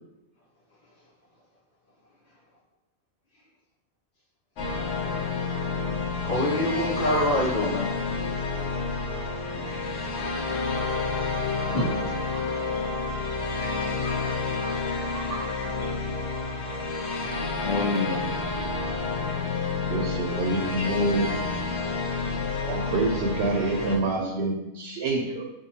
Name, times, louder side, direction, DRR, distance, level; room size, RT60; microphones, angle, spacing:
sound 1, 4.6-24.0, left 3 dB, 80° left, 1.0 m, -29 dB
voice 1, 6.2-7.9 9.5-10.0 17.6-18.2, left 1 dB, 55° left, -4 dB, 0.8 m, -26 dB
voice 2, 11.7-12.5 13.6-16.5, equal, ahead, -5 dB, 0.6 m, -36 dB
voice 3, 19.9-21.4 22.0-22.2 22.6-25.4, right 2 dB, 65° right, 1 dB, 0.8 m, -27 dB
4.0 x 2.5 x 2.8 m, 0.91 s
omnidirectional pair, 1.2 m